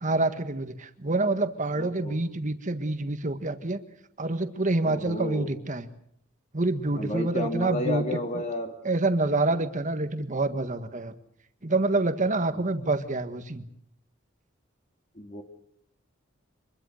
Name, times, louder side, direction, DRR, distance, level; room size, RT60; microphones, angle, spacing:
voice 1, 0.0-3.8 4.2-5.9 6.5-8.0 8.3-8.4 8.8-11.1 11.6-13.6, right 2 dB, 40° right, 10 dB, 1.6 m, -27 dB
voice 2, 1.8-2.2 4.8-5.5 6.9-8.7 12.5-12.6 15.2-15.4, left 1 dB, 35° left, 4 dB, 2.7 m, -32 dB
26.0 x 21.5 x 6.5 m, 0.71 s
head